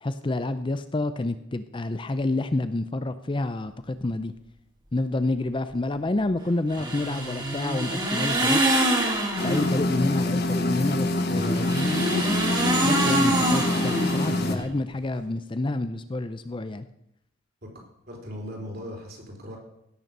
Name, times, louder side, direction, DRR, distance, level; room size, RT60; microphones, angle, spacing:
voice 1, 0.0-4.3 4.9-8.6 9.4-11.7 12.8-16.9, left 2 dB, 25° left, 11 dB, 0.5 m, -28 dB
sound 1, 6.7-9.8 11.3-14.6, right 1 dB, 20° right, 2.3 m, -25 dB
sound 2, 9.4-14.6, left 2 dB, 50° left, 1.3 m, -25 dB
voice 2, 18.1-19.6, equal, 50° right, 0 dB, 3.6 m, -38 dB
16.5 x 6.8 x 6.6 m, 0.80 s
head